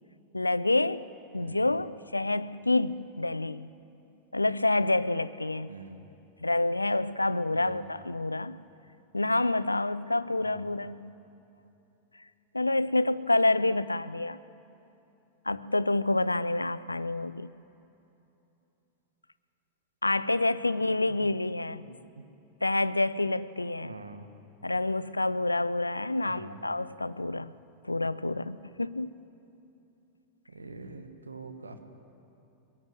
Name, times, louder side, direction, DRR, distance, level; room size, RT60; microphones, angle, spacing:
voice 1, 0.3-3.7 4.3-5.7 6.4-8.6 9.1-11.1 12.5-14.4 15.5-17.5 20.0-21.8 22.6-23.9 24.6-27.5 27.8-29.2, left 2 dB, 85° left, 16 dB, 0.5 m, -28 dB
voice 2, 5.7-6.0 7.5-7.8 10.4-10.7 20.8-21.2 21.7-22.0 23.8-24.3 26.2-26.6 30.5-31.8, right 3 dB, 75° right, 6 dB, 1.7 m, -45 dB
22.5 x 17.5 x 8.0 m, 2.9 s
figure-of-eight pair, 90°, 0 cm